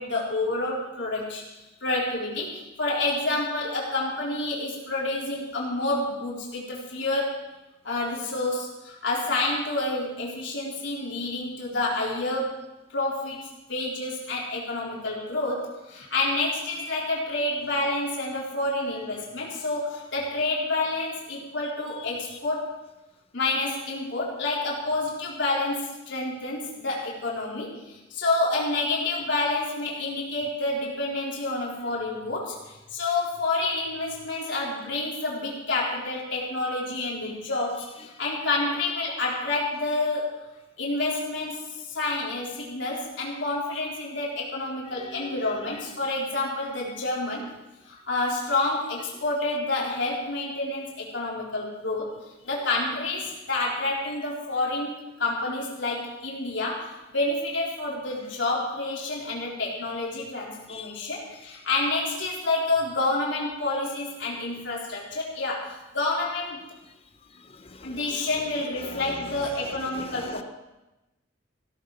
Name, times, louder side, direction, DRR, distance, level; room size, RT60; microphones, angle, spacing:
voice 1, 0.0-1.4 1.8-7.4 7.8-12.6 12.9-22.7 23.3-40.4 40.8-47.5 47.8-52.1 52.4-66.6 67.8-70.4, left 2 dB, 60° left, -4 dB, 4.2 m, -29 dB
voice 2, 44.9-45.8 49.5-49.6 60.7-61.0 67.3-68.2 68.8-70.4, left 3 dB, 30° left, 9 dB, 0.9 m, -43 dB
16.5 x 13.0 x 4.9 m, 1.0 s
head